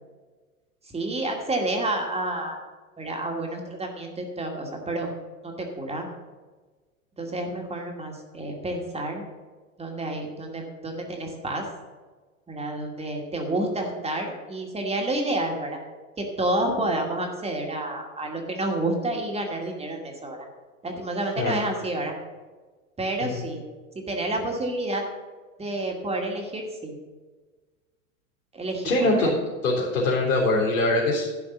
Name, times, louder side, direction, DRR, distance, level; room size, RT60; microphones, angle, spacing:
voice 1, 0.8-2.6 3.0-5.1 5.4-6.1 7.2-9.2 9.8-11.7 12.5-15.8 16.2-20.5 20.8-22.1 23.0-23.6 24.1-25.0 25.6-26.9 28.5-29.3, right 1 dB, 15° right, 1 dB, 2.3 m, -29 dB
voice 2, 28.8-29.3 29.6-31.3, left 2 dB, 70° left, -5 dB, 3.8 m, -23 dB
11.5 x 5.1 x 8.2 m, 1.3 s
hypercardioid pair, 95°, 41 cm